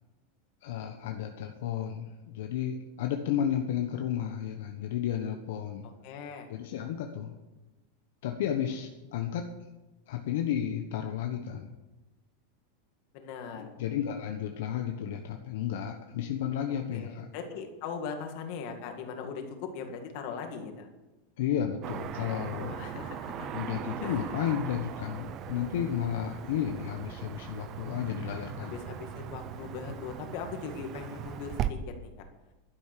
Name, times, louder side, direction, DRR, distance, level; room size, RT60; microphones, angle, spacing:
voice 1, 0.6-5.9 6.5-7.3 8.2-9.5 10.1-11.7 13.6-17.3 21.4-22.8 23.5-28.8, left 9 dB, 60° left, 4 dB, 1.2 m, -32 dB
voice 2, 5.8-6.5 13.1-13.7 16.7-20.9 22.6-23.5 24.0-24.4 28.6-32.1, left 6 dB, 45° left, 5 dB, 2.2 m, -40 dB
Car passing by / Traffic noise roadway noise, 21.8-31.7, right 10 dB, 25° right, 0.6 m, -39 dB
12.0 x 10.5 x 6.8 m, 1.1 s
supercardioid pair, 175°, 0 cm